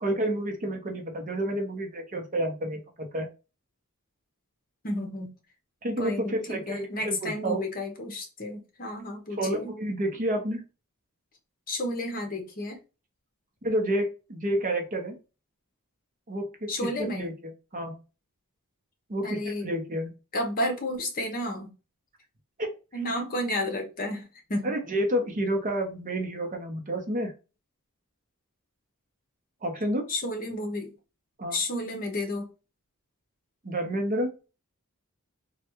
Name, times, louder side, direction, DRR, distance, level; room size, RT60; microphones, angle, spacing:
voice 1, 0.0-3.3 5.8-7.6 9.4-10.6 13.6-15.2 16.3-17.3 17.7-18.0 19.1-20.1 22.6-22.7 24.6-27.3 29.6-30.1 31.4-31.6 33.6-34.3, right 1 dB, 35° right, 3 dB, 0.8 m, -29 dB
voice 2, 4.8-5.3 6.0-9.7 11.7-12.8 16.7-17.3 19.2-19.7 20.3-21.7 22.9-24.7 30.1-30.9 31.5-32.5, left 1 dB, 40° left, 3 dB, 0.8 m, -32 dB
3.3 x 2.3 x 2.9 m, 0.30 s
head